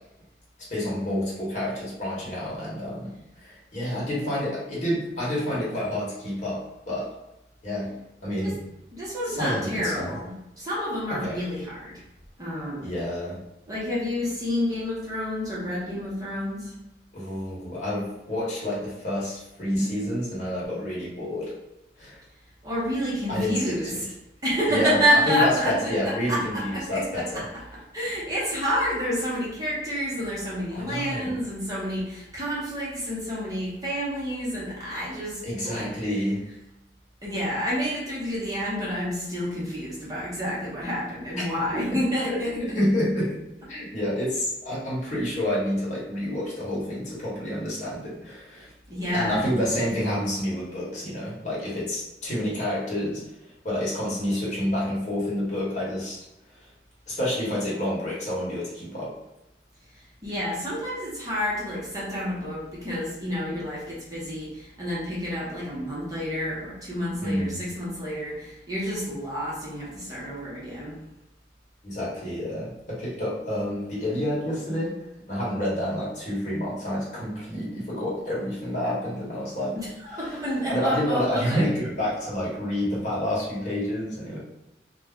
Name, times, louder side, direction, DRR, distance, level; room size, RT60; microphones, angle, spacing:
voice 1, 0.7-7.1 7.6-8.6 9.3-10.1 11.1-11.4 12.8-13.4 17.1-21.5 22.0-22.2 23.3-24.0 24.7-25.0 25.3-27.5 30.7-31.3 35.4-36.5 41.7-42.0 42.3-43.4 43.7-48.7 49.1-53.2 53.6-56.2 56.6-56.7 57.1-59.2 67.2-67.7 71.8-79.8 80.7-84.4, left 1 dB, 45° left, -7 dB, 1.0 m, -29 dB
voice 2, 8.9-10.3 10.6-12.0 12.4-12.9 13.7-16.7 22.6-24.0 24.4-27.6 27.9-35.9 37.2-42.9 45.1-45.2 48.9-49.4 59.9-71.0 79.7-81.7 82.0-82.1, equal, 20° right, -8 dB, 0.8 m, -29 dB
2.3 x 2.1 x 3.5 m, 0.93 s
head